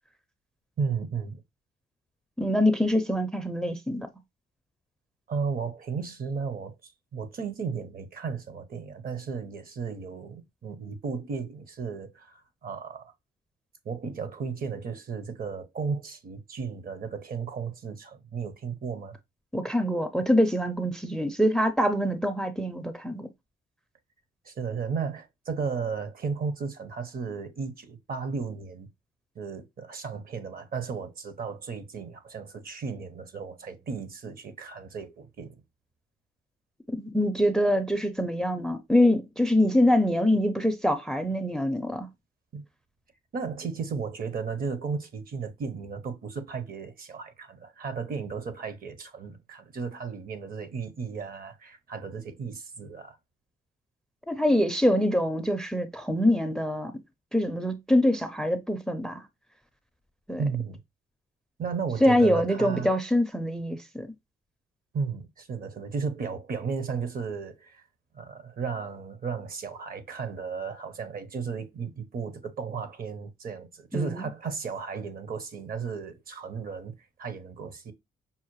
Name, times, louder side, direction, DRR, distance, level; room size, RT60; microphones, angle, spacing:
voice 1, 0.8-1.4 5.3-13.1 13.8-19.2 24.4-28.9 29.4-35.6 42.5-42.6 43.3-53.2 60.4-60.8 61.6-62.9 64.9-67.8 68.1-76.9 77.2-77.9, right 5 dB, 45° right, 0.8 m, -34 dB
voice 2, 2.4-4.1 19.5-23.3 37.0-42.1 54.3-56.9 57.3-59.2 60.3-60.4 62.0-64.1 73.9-74.3, left 1 dB, 5° left, 0.4 m, -24 dB
5.5 x 2.1 x 3.0 m
cardioid pair, 90°, 20 cm